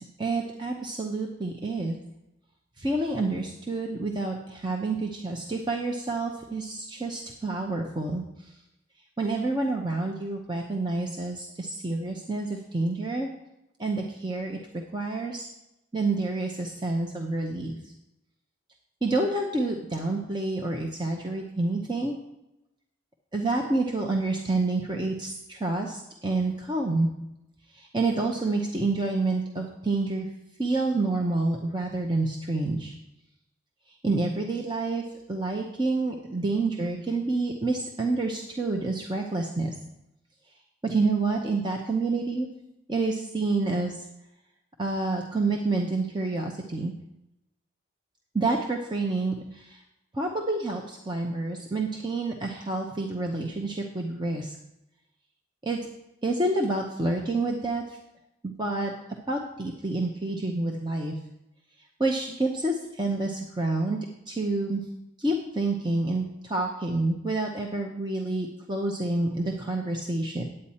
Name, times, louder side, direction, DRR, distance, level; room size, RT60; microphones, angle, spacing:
voice 1, 0.0-2.0 2.8-8.5 9.2-13.3 13.8-15.5 15.9-17.9 19.0-22.2 23.3-27.1 27.7-30.3 30.6-32.9 33.9-35.0 35.3-39.8 40.8-42.5 42.9-44.0 44.8-46.9 48.3-49.8 50.1-54.6 55.6-55.8 56.2-58.0 58.6-59.0 59.3-61.1 62.0-64.0 64.3-64.8 65.2-70.4, right 2 dB, 20° right, 1 dB, 0.7 m, -28 dB
10.0 x 8.7 x 4.3 m, 0.88 s
head